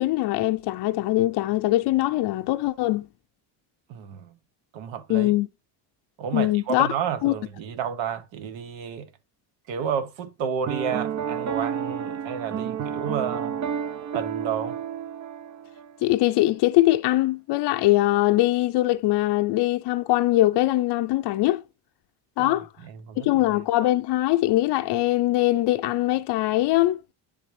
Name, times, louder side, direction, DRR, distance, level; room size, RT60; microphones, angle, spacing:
voice 1, 0.0-3.1 5.1-5.5 6.3-6.9 7.2-7.3 16.0-21.6 22.4-22.7 23.2-27.0, left 16 dB, 65° left, 0.6 m, -22 dB
voice 2, 3.9-4.4 4.7-5.3 6.2-9.1 9.7-13.6 14.1-14.8 22.4-22.5 22.8-23.3, right 7 dB, 85° right, 1.1 m, -31 dB
Piano, 10.7-16.0, right 8 dB, 40° right, 0.6 m, -30 dB
10.0 x 3.4 x 3.2 m
cardioid pair, 100°, 44 cm